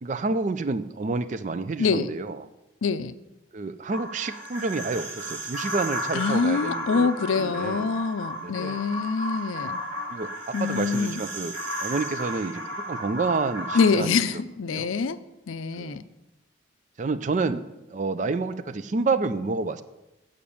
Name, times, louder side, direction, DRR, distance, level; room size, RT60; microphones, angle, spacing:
voice 1, 0.0-2.5 3.5-7.1 7.4-7.9 8.4-8.8 10.1-10.3 10.6-14.4 14.7-14.9 15.8-16.0 17.0-17.6 17.9-19.8, right 3 dB, 35° right, 13 dB, 0.4 m, -29 dB
voice 2, 1.8-2.1 2.8-3.1 6.1-9.8 10.5-11.2 13.7-15.2 15.5-16.0, left 5 dB, 80° left, 13 dB, 0.5 m, -25 dB
sound 1, 3.9-13.9, equal, 65° right, 2.2 m, -34 dB
8.5 x 5.1 x 7.1 m, 0.98 s
head